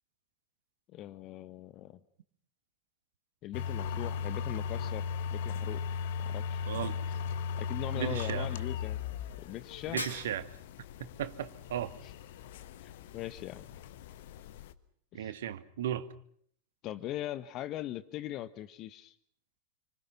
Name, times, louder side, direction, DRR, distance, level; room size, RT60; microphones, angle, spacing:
voice 1, 0.9-2.0 3.4-5.1 5.3-5.8 6.2-6.6 7.6-9.0 9.4-10.0 12.0-12.1 12.8-13.7 15.1-15.4 16.8-19.1, left 13 dB, 35° left, 15 dB, 1.3 m, -40 dB
sound 1, 3.5-14.7, left 6 dB, 55° left, 1.4 m, -37 dB
voice 2, 6.7-7.0 7.9-8.5 9.9-10.5 11.0-12.0 15.1-16.1, right 11 dB, 60° right, 11 dB, 1.9 m, -36 dB
Shatter, 10.0-10.8, equal, 85° left, 5.0 m, -39 dB
28.0 x 25.5 x 6.0 m, 0.63 s
figure-of-eight pair, 90°, 0 cm